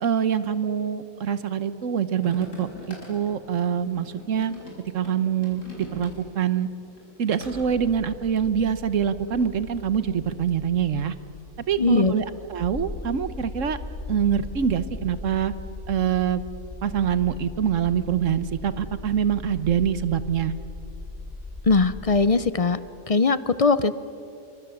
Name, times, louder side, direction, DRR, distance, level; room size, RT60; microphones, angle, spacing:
voice 1, 0.0-4.5 4.9-6.7 7.2-11.1 11.7-13.8 14.1-15.5 15.9-16.4 16.8-20.5, right 8 dB, 70° right, 13 dB, 1.4 m, -25 dB
sound 1, 2.2-6.5 6.8-7.7, equal, 70° left, 5.8 m, -42 dB
sound 2, 7.4-22.3, left 3 dB, 20° right, 5.8 m, -39 dB
voice 2, 11.8-12.1 21.7-22.8 23.1-23.9, left 4 dB, 45° left, 15 dB, 0.5 m, -20 dB
27.5 x 24.5 x 7.2 m, 2.6 s
omnidirectional pair, 1.4 m